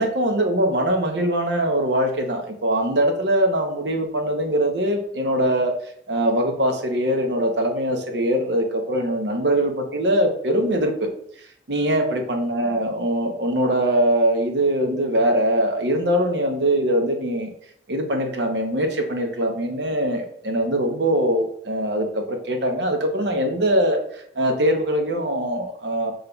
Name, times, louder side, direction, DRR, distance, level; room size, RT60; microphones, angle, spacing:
voice 1, 0.0-5.7 6.1-11.1 11.7-17.5 17.9-26.1, right 1 dB, 75° right, 4 dB, 0.8 m, -22 dB
5.3 x 3.6 x 2.2 m, 0.68 s
head